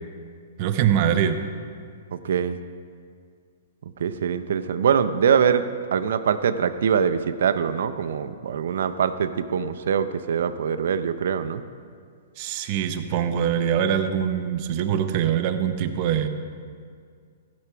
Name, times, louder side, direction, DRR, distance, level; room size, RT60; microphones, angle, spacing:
voice 1, 0.6-1.4 12.4-16.3, right 9 dB, 35° right, 8 dB, 0.7 m, -23 dB
voice 2, 2.1-2.6 4.0-5.6 5.9-11.6, right 7 dB, 75° right, 11 dB, 0.5 m, -23 dB
15.0 x 6.1 x 5.7 m, 2.1 s
hypercardioid pair, 155°, 0 cm